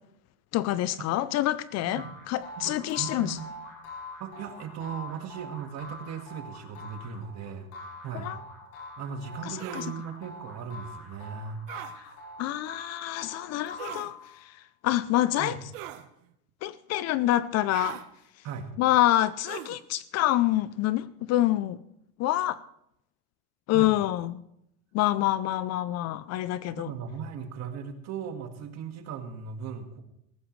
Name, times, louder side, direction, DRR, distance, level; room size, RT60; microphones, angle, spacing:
voice 1, 0.5-3.4 8.1-8.4 9.5-9.8 12.4-14.1 14.5-14.6 14.8-15.6 16.6-18.0 18.8-21.8 22.2-22.6 23.7-24.4 24.9-26.9, left 14 dB, 45° left, 0.5 m, -26 dB
sound 1, 1.9-14.5, left 2 dB, 80° left, 5.2 m, -44 dB
voice 2, 2.6-3.5 4.2-7.7 8.0-8.3 9.0-11.6 15.4-15.6 18.4-18.7 23.7-23.9 26.7-30.0, right 7 dB, 45° right, 1.8 m, -38 dB
sound 2, 9.6-9.9 11.7-11.9 13.8-14.1 15.7-16.1 17.7-18.1 19.5-19.8, right 13 dB, 80° right, 1.2 m, -39 dB
19.0 x 15.0 x 3.2 m
cardioid pair, 140°, 37 cm